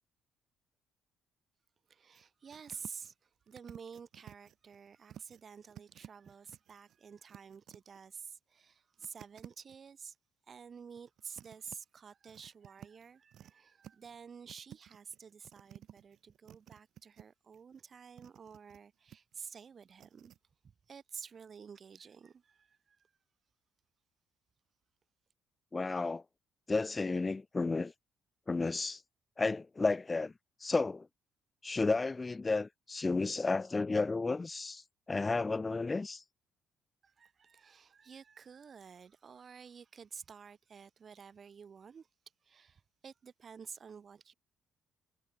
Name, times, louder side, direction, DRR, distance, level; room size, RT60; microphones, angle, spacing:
voice 1, 1.9-3.1 3.5-10.1 10.5-20.3 20.9-23.0 37.0-42.1 42.4-44.3, right 6 dB, 45° right, 3.9 m, -51 dB
sound 1, 2.1-2.2 2.5-3.1 3.5-5.4 5.7-8.0 9.0-9.8 11.0-11.8 12.3-13.5 13.8-14.2 14.5-17.2 17.5-18.8 19.1-19.4 19.9-20.4, right 11 dB, 65° right, 3.0 m, -54 dB
voice 2, 25.7-26.2 26.7-27.9 28.5-29.0 29.4-30.3 30.6-31.1 31.6-36.2, left 3 dB, 25° left, 1.0 m, -32 dB
hypercardioid pair, 60°, 0 cm